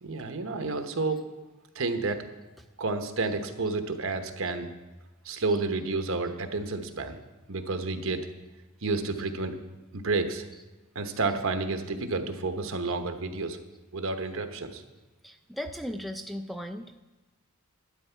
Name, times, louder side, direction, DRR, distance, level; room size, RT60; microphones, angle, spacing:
voice 1, 0.0-1.2 1.7-2.2 2.8-4.7 5.2-7.2 7.5-8.3 8.8-9.5 9.9-10.4 10.9-13.6 13.9-14.8, right 3 dB, 70° right, 6 dB, 1.0 m, -30 dB
voice 2, 15.2-17.0, equal, ahead, 4 dB, 0.3 m, -37 dB
12.0 x 9.8 x 4.5 m, 1.1 s
head